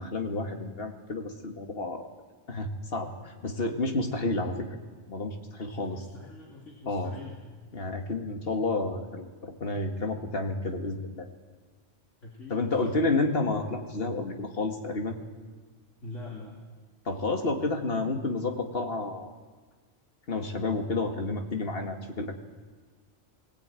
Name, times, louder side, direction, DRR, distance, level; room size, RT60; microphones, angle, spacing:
voice 1, 0.0-2.1 2.5-4.7 5.1-6.0 6.9-7.1 7.7-11.3 12.5-15.2 17.1-19.3 20.3-22.3, left 2 dB, 50° left, 4 dB, 2.1 m, -30 dB
voice 2, 5.8-7.6 12.2-13.0 16.0-16.6, left 2 dB, 75° left, -3 dB, 3.3 m, -43 dB
19.5 x 18.5 x 9.0 m, 1.4 s
omnidirectional pair, 1.3 m